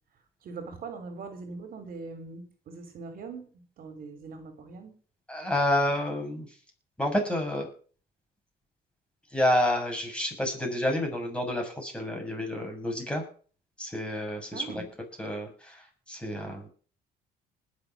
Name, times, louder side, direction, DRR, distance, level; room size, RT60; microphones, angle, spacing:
voice 1, 0.4-4.9 14.5-14.9, right 4 dB, 60° right, 8 dB, 3.4 m, -41 dB
voice 2, 5.3-6.5 7.0-7.7 9.3-13.2 13.8-14.8 15.2-15.8 16.1-16.7, left 1 dB, 5° left, 1 dB, 7.2 m, -29 dB
20.5 x 7.0 x 6.2 m, 0.41 s
cardioid pair, 110°, 17 cm